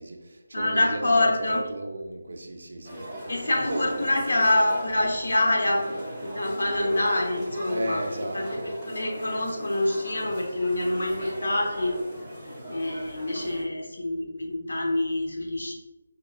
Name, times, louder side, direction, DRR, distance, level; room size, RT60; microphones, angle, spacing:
voice 1, 0.0-3.1 3.7-3.8 7.7-8.7, right 1 dB, 50° right, 3 dB, 0.4 m, -34 dB
voice 2, 0.5-1.6 3.3-8.0 8.3-8.5 8.9-11.9 12.7-15.7, left 1 dB, 75° left, 0 dB, 0.9 m, -26 dB
sound 1, 2.8-13.6, equal, 5° left, 0.5 m, -38 dB
5.3 x 2.2 x 2.3 m, 1.2 s
figure-of-eight pair, 180°, 0 cm